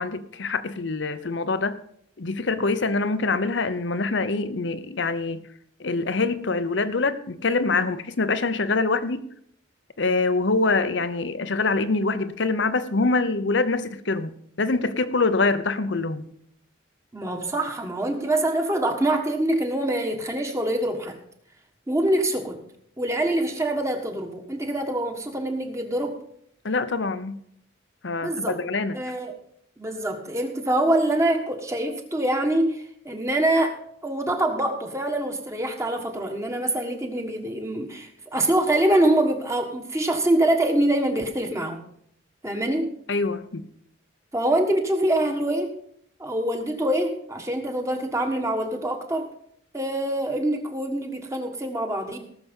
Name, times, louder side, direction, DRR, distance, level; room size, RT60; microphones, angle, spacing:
voice 1, 0.0-1.8 2.2-5.5 5.8-9.2 10.0-16.3 26.6-27.4 28.0-29.0 43.1-43.7, left 3 dB, 70° left, 0.8 m, -25 dB
voice 2, 17.1-21.2 21.9-22.6 23.0-26.2 28.2-28.6 28.9-29.3 29.8-33.8 34.0-41.8 42.4-43.0 44.3-45.7 46.2-49.3 49.7-52.2, right 1 dB, 15° right, 1.5 m, -25 dB
18.0 x 6.9 x 5.3 m
head